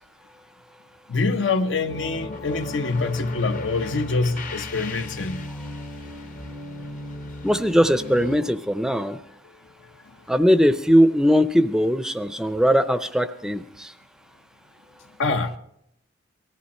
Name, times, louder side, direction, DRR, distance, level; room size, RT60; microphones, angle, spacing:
voice 1, 1.1-5.4 9.8-10.1 15.2-15.5, left 3 dB, 85° left, 0.9 m, -25 dB
sound 1, 1.9-8.4, left 2 dB, 45° left, 0.8 m, -36 dB
voice 2, 7.4-9.2 10.3-13.9, equal, 5° right, 0.5 m, -20 dB
18.5 x 14.0 x 4.2 m
head